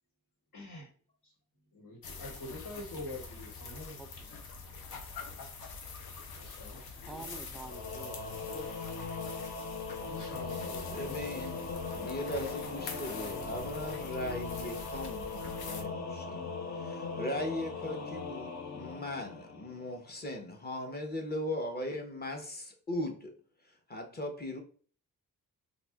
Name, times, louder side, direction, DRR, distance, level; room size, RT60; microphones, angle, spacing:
voice 1, 0.5-0.9 1.2-1.3 1.7-4.0 5.4-5.5 6.4-7.2 10.0-12.2, left 2 dB, 70° left, 1.5 m, -46 dB
sound 1, 2.0-15.8, left 4 dB, 90° left, 0.7 m, -45 dB
voice 2, 4.0-4.4 7.0-8.8, right 2 dB, ahead, 0.3 m, -48 dB
Singing / Musical instrument, 7.6-20.1, left 4 dB, 50° left, 0.6 m, -39 dB
voice 3, 10.9-11.6 12.0-16.4 16.8-23.3 23.9-24.6, left 1 dB, 25° left, 0.9 m, -38 dB
2.6 x 2.5 x 3.4 m
cardioid pair, 75°, 36 cm